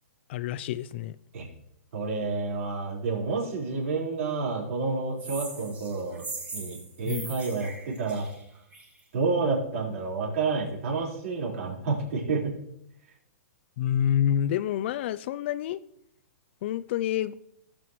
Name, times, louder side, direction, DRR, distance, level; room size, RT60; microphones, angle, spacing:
voice 1, 0.3-1.2 7.0-7.4 13.8-15.8 16.6-17.3, left 10 dB, 45° left, 16 dB, 0.4 m, -28 dB
voice 2, 1.9-6.2 6.5-8.3 9.1-12.6, right 4 dB, 60° right, -2 dB, 4.5 m, -29 dB
sound 1, 5.2-9.0, right 3 dB, 15° right, 1.7 m, -40 dB
17.0 x 7.5 x 3.1 m, 0.75 s
hypercardioid pair, 145°, 9 cm